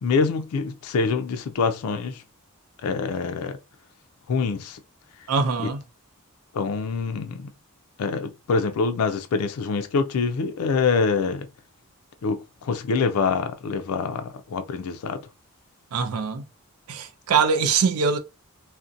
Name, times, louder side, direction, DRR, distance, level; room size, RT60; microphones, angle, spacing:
voice 1, 0.0-2.2 2.8-3.6 4.3-4.8 6.5-7.5 8.0-11.5 12.2-15.2, left 4 dB, 85° left, 0.4 m, -25 dB
voice 2, 5.3-5.8 15.9-16.4 16.9-18.2, right 5 dB, 85° right, 0.4 m, -23 dB
2.5 x 2.1 x 2.5 m
head